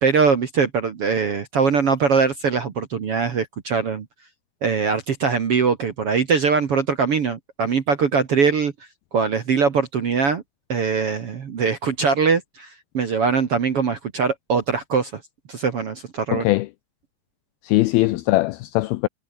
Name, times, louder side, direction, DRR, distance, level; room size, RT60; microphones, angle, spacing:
voice 1, 0.0-4.0 4.6-8.7 9.1-10.4 10.7-15.2 15.5-16.5, right 5 dB, 55° right, 1.7 m, -22 dB
voice 2, 16.3-16.7 17.6-19.1, left 19 dB, 90° left, 2.1 m, -20 dB
omnidirectional pair, 5.0 m